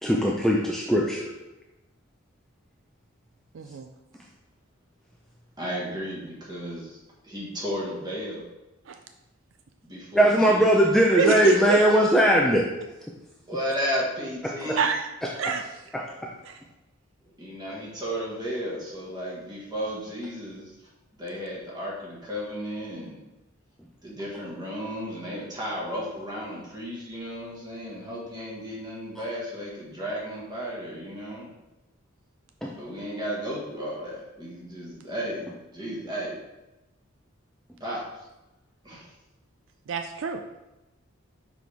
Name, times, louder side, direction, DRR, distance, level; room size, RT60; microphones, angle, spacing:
voice 1, 0.0-1.3 10.1-12.6 14.6-14.7 15.9-16.0 32.6-32.7, equal, ahead, -2 dB, 0.4 m, -20 dB
voice 2, 3.5-3.9 8.9-9.0 11.2-11.8 14.8-15.1 15.4-15.6 16.5-16.6 39.9-40.4, right 5 dB, 65° right, 6 dB, 0.4 m, -26 dB
voice 3, 5.6-7.0 7.2-8.4 9.8-10.9 13.5-14.9 17.2-20.8 21.2-23.2 24.0-31.5 32.7-36.4 37.8-38.3 38.8-39.1, equal, 20° right, -5 dB, 1.5 m, -34 dB
6.1 x 4.8 x 3.4 m, 1.0 s
head